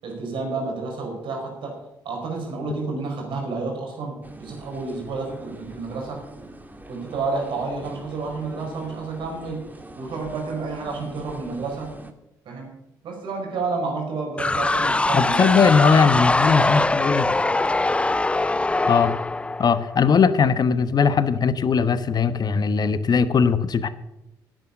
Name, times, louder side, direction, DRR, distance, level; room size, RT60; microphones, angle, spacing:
voice 1, 0.0-1.7 2.0-6.2 6.9-9.6 10.0-11.9 12.4-12.7 13.0-15.5, right 3 dB, 70° right, 1 dB, 5.1 m, -30 dB
sound 1, 4.2-12.1, right 1 dB, 20° right, 1.8 m, -43 dB
Ignite Chuck, 14.4-20.1, left 2 dB, 15° left, 0.4 m, -22 dB
voice 2, 15.1-17.3 18.9-19.1 19.6-23.9, left 6 dB, 50° left, 13 dB, 1.0 m, -19 dB
10.5 x 9.0 x 7.1 m, 0.90 s
hypercardioid pair, 55°, 9 cm